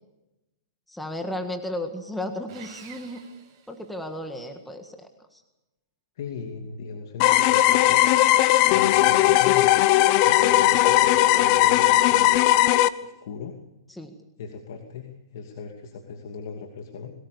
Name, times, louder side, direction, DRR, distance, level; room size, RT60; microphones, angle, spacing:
voice 1, 0.9-3.2 3.7-5.4 13.9-14.1, left 1 dB, 5° left, 5 dB, 1.7 m, -34 dB
Sawing, 2.5-4.4, right 8 dB, 35° right, 7.5 m, -48 dB
voice 2, 6.2-8.4 8.7-9.7 10.2-12.3 13.0-13.6 14.4-17.1, left 5 dB, 60° left, 3 dB, 2.7 m, -38 dB
sound 1, 7.2-12.9, left 15 dB, 35° left, 0.9 m, -18 dB
22.5 x 18.5 x 6.9 m, 0.96 s
hypercardioid pair, 155°, 2 cm